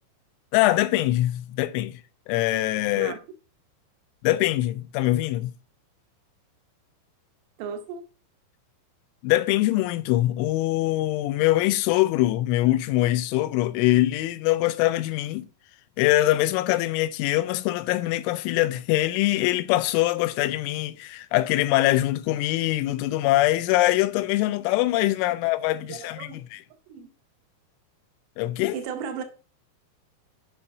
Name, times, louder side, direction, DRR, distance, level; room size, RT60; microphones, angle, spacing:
voice 1, 0.5-2.0 2.3-3.1 4.2-5.5 9.2-15.5 16.0-26.6 28.4-28.8, left 16 dB, 85° left, 2.9 m, -23 dB
voice 2, 7.6-8.0 25.8-26.4 26.9-27.1 28.7-29.2, right 6 dB, 80° right, 2.5 m, -35 dB
8.3 x 5.6 x 2.6 m
omnidirectional pair, 5.7 m